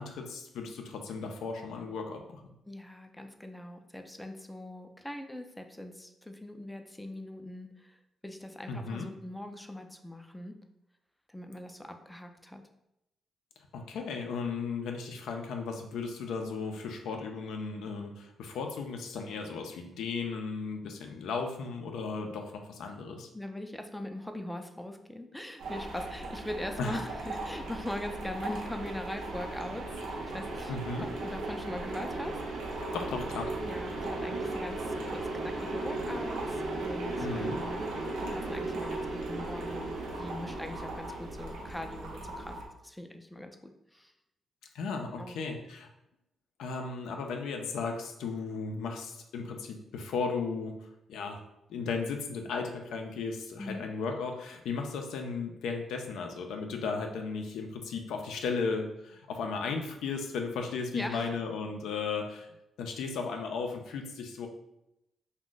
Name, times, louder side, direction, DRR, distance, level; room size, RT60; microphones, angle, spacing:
voice 1, 0.0-2.5 8.7-9.1 13.7-23.3 26.8-27.0 30.7-31.1 32.9-33.5 37.2-37.6 44.7-45.9 46.6-50.7 51.1-51.4 51.7-62.5 62.8-64.5, left 4 dB, 90° left, 3 dB, 0.3 m, -35 dB
voice 2, 2.7-10.6 11.3-12.6 23.3-30.7 31.0-32.4 32.7-32.8 33.6-37.8 38.2-42.6 42.8-44.1 45.2-45.4 53.6-53.8 60.9-61.4, left 1 dB, 5° left, 5 dB, 0.3 m, -41 dB
sound 1, 25.6-42.7, right 2 dB, 90° right, 0.5 m, -36 dB
2.4 x 2.1 x 3.7 m, 0.86 s
cardioid pair, 75°, 0 cm